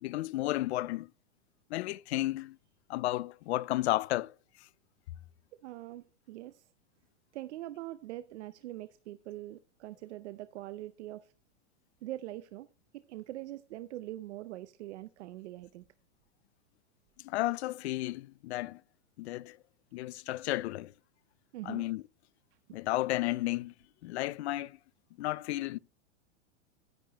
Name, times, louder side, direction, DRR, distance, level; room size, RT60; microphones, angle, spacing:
voice 1, 0.0-1.1 1.7-2.6 2.9-4.3 17.2-18.8 19.2-19.6 19.9-20.9 21.6-22.0 22.7-23.7 24.0-24.8 25.2-25.8, left 17 dB, 60° left, 0.5 m, -33 dB
voice 2, 5.6-6.6 7.3-11.2 12.0-12.7 12.9-15.8 21.5-21.8, right 15 dB, 65° right, 0.6 m, -43 dB
10.5 x 10.5 x 3.0 m
supercardioid pair, 155°, 37 cm